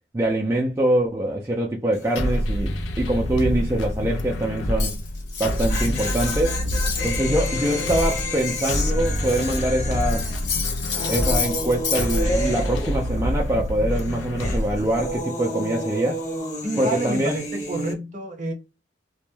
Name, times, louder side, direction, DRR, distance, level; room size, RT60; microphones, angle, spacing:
voice 1, 0.1-4.9 5.4-6.6 7.0-10.3 11.1-16.2 16.8-17.4, right 1 dB, 15° right, 0.3 m, -24 dB
sound 1, 1.9-2.3 2.5-2.6 5.3-13.6 13.9-17.9, left 1 dB, 40° left, 0.8 m, -31 dB
sound 2, 2.2-15.2, left 1 dB, 85° left, 0.4 m, -27 dB
Cutlery silverware, 4.8-7.2 7.5-9.7 10.0-12.2, left 6 dB, 70° left, 0.9 m, -31 dB
voice 2, 16.6-18.5, right 1 dB, 40° right, 0.7 m, -28 dB
2.2 x 2.0 x 3.0 m
head